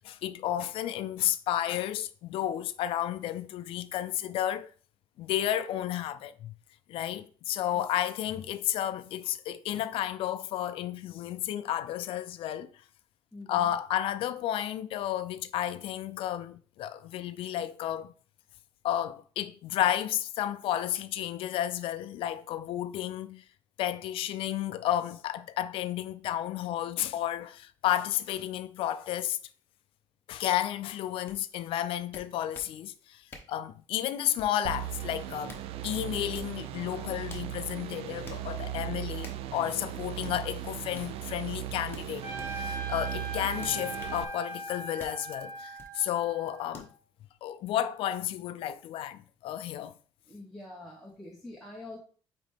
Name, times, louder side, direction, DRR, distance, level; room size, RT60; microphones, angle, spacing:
voice 1, 0.0-4.7 5.2-6.5 6.9-12.7 13.5-18.1 18.8-23.4 23.8-29.4 30.3-33.2 33.5-35.5 35.8-46.9 47.4-49.9, left 12 dB, 60° left, 0.4 m, -32 dB
voice 2, 13.3-13.7 50.3-52.0, left 2 dB, ahead, 0.9 m, -45 dB
sound 1, 31.3-31.4 32.1-32.7 33.3-33.6 34.4-34.7 35.2-35.7 36.3-36.6 37.3-37.5 38.3-38.4 39.2-39.5 40.2-40.4 40.9-41.1 41.9-42.5 43.6-44.2 45.0-45.2 45.8-45.9 46.7-46.9, left 3 dB, 20° left, 1.0 m, -48 dB
sound 2, 34.6-44.2, right 13 dB, 70° right, 0.4 m, -38 dB
Trumpet, 42.2-46.9, right 1 dB, 30° right, 3.0 m, -40 dB
8.9 x 3.3 x 3.4 m
cardioid pair, 180°, 10 cm